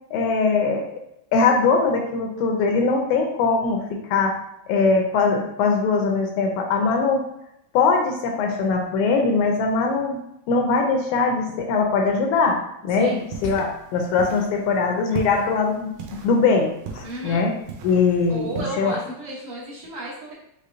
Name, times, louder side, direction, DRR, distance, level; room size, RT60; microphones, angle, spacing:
voice 1, 0.1-0.9 1.3-4.3 4.7-7.2 7.7-10.2 10.5-12.6 12.8-15.9 16.2-17.5 17.8-18.5 18.8-19.0, left 4 dB, 80° left, 2 dB, 1.9 m, -21 dB
voice 2, 13.0-13.3 17.0-17.5 18.3-20.3, right 2 dB, 65° right, -7 dB, 1.6 m, -33 dB
sound 1, 13.2-18.6, right 6 dB, 90° right, 2.2 m, -38 dB
5.5 x 3.3 x 2.5 m, 0.79 s
omnidirectional pair, 3.6 m